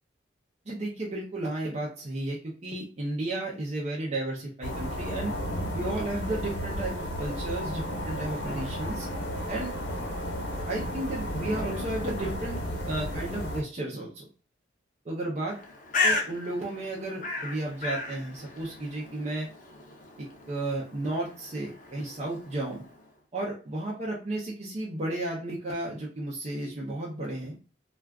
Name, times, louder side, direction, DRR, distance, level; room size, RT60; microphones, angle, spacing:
voice 1, 0.7-5.3 5.7-9.1 9.5-9.7 10.7-14.3 15.0-15.6 16.0-19.5 20.2-22.8 23.3-27.5, right 2 dB, 40° right, -4 dB, 0.6 m, -33 dB
sound 1, 4.6-13.6, equal, 80° left, 0.9 m, -33 dB
Bird, 15.5-23.1, left 3 dB, 45° left, 0.6 m, -35 dB
2.4 x 2.3 x 3.4 m, 0.38 s
head